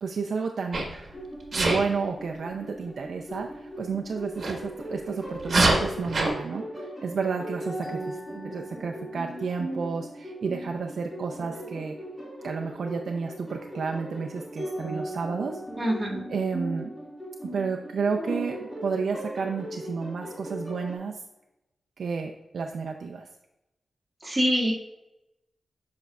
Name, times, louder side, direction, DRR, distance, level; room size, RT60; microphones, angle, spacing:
voice 1, 0.0-0.8 1.5-12.0 12.4-15.6 16.3-16.9 17.4-21.2 22.0-23.3, right 5 dB, 75° right, 2 dB, 0.5 m, -31 dB
Sneeze, 0.7-1.0 1.5-1.8 4.4-4.5 5.4-6.3, right 2 dB, 45° right, 1.4 m, -23 dB
sound 1, 1.1-21.0, right 1 dB, 10° left, 2.1 m, -38 dB
voice 2, 15.8-16.2 24.2-24.7, equal, 20° right, -4 dB, 2.0 m, -25 dB
8.0 x 5.2 x 2.4 m, 0.93 s
wide cardioid pair, 110°, 0 cm